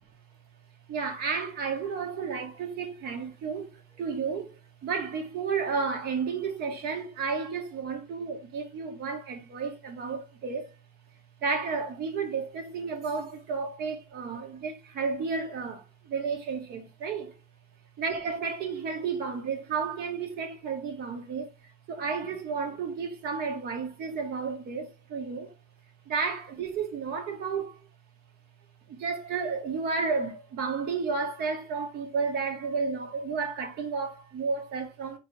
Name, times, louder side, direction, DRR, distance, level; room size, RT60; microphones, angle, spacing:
voice 1, 0.9-10.7 11.4-17.4 18.0-25.6 26.0-27.9 28.9-35.2, right 5 dB, 70° right, 1.4 m, -32 dB
4.1 x 3.2 x 3.2 m
cardioid pair, 110°, 17 cm